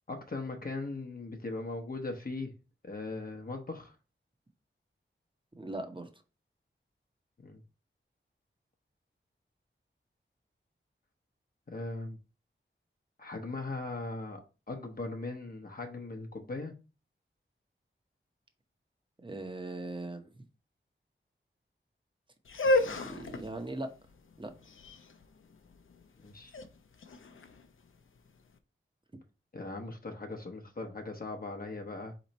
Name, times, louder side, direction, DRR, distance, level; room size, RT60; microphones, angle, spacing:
voice 1, 0.1-2.5 2.8-3.9 7.4-7.6 11.7-12.2 13.2-14.4 14.7-16.7 26.2-26.5 29.5-32.1, left 3 dB, 45° left, 0.8 m, -39 dB
voice 2, 5.6-6.1 19.2-20.3 22.8-23.9 24.4-24.5, right 2 dB, 25° right, 0.8 m, -39 dB
sound 1, 22.4-28.4, left 1 dB, 75° left, 0.6 m, -33 dB
4.2 x 3.0 x 4.0 m
wide cardioid pair, 70°, 21 cm